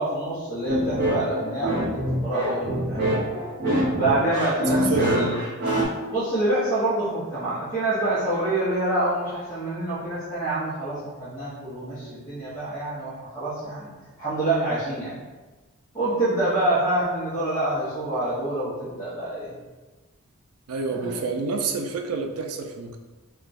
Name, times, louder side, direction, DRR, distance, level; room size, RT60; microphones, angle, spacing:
voice 1, 0.0-3.2 3.9-5.3 6.1-13.9 14.2-15.2 15.9-19.5 20.9-21.3, right 1 dB, 20° left, -12 dB, 0.8 m, -26 dB
sound 1, 0.7-5.8, right 1 dB, 45° right, 0.8 m, -25 dB
voice 2, 4.7-5.4 20.7-23.0, right 4 dB, 70° right, 4 dB, 0.4 m, -28 dB
2.3 x 2.2 x 3.9 m, 1.3 s
head